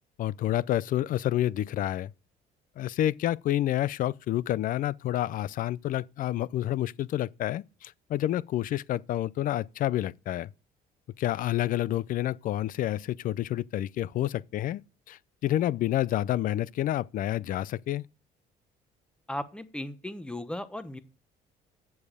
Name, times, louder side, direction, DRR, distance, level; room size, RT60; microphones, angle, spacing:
voice 1, 0.2-2.1 2.8-10.5 11.2-14.8 15.1-18.0, left 13 dB, 55° left, 0.4 m, -29 dB
voice 2, 19.3-21.0, left 1 dB, 5° left, 0.9 m, -36 dB
8.5 x 7.1 x 4.9 m
cardioid pair, 110°, 17 cm